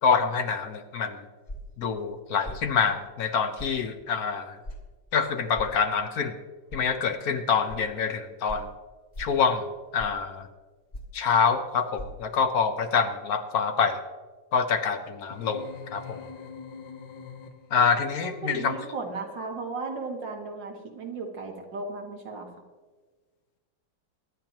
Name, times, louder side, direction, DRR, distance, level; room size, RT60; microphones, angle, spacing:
voice 1, 0.0-1.2 1.8-4.6 5.1-6.4 6.7-8.7 9.2-9.6 9.9-10.5 11.1-14.0 14.5-15.7 15.9-16.2 17.7-18.7, left 6 dB, 65° left, 8 dB, 1.2 m, -26 dB
sound 1, 1.5-1.8 2.4-2.7 3.6-3.8 4.6-4.8 5.5-5.8 6.7-6.8 7.7-7.8 8.5-8.7 9.1-9.4 10.0-10.3 10.9-11.2 11.9-12.1, equal, 35° left, 1.6 m, -39 dB
sound 2, 15.3-17.9, left 5 dB, 90° left, 1.7 m, -43 dB
voice 2, 18.2-22.5, right 3 dB, 80° right, 1 dB, 2.5 m, -35 dB
23.0 x 10.5 x 3.0 m, 1.4 s
omnidirectional pair, 1.9 m